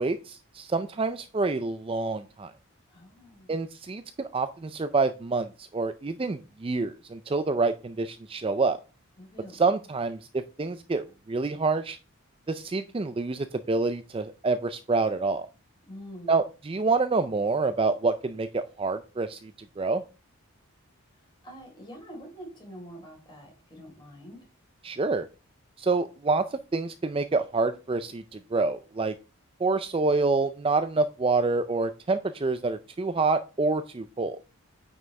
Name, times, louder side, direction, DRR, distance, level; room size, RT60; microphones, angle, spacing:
voice 1, 0.0-2.5 3.5-8.8 9.5-12.0 12.5-15.5 16.3-19.5 19.8-20.0 24.8-25.3 25.8-29.1 29.6-34.4, right 3 dB, 25° right, 11 dB, 0.4 m, -27 dB
voice 2, 2.9-3.5 9.2-9.6 15.9-16.4 21.1-24.4, equal, 20° left, 0 dB, 4.0 m, -45 dB
9.2 x 6.1 x 3.3 m, 0.31 s
head